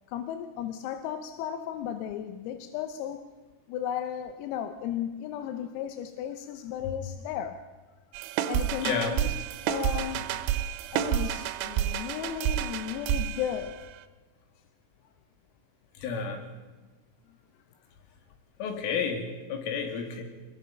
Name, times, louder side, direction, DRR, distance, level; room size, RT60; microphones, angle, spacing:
voice 1, 0.1-3.2 3.7-7.6 8.5-9.4 9.7-10.4 10.9-13.8, left 10 dB, 90° left, 7 dB, 3.7 m, -34 dB
sound 1, 8.1-14.0, right 11 dB, 80° right, 3.5 m, -30 dB
voice 2, 8.8-9.1 16.0-16.5 18.6-20.2, left 6 dB, 75° left, 4 dB, 4.8 m, -31 dB
25.0 x 21.5 x 5.8 m, 1.3 s
omnidirectional pair, 6.0 m